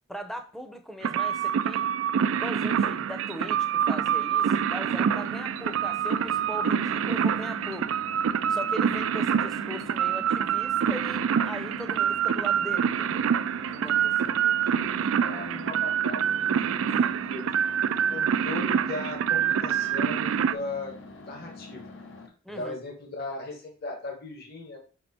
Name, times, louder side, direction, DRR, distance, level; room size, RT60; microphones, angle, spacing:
voice 1, 0.1-1.9 2.3-8.0 8.5-13.2 13.7-14.3 16.9-17.1 22.4-22.8, equal, ahead, 0.6 m, -39 dB
sound 1, 1.0-20.5, right 8 dB, 85° right, 0.3 m, -26 dB
sound 2, 4.8-22.3, left 2 dB, 75° left, 1.0 m, -45 dB
voice 2, 14.2-17.8 18.1-20.9 21.2-21.9 22.5-24.8, left 2 dB, 55° left, 1.3 m, -38 dB
5.1 x 4.4 x 4.1 m
head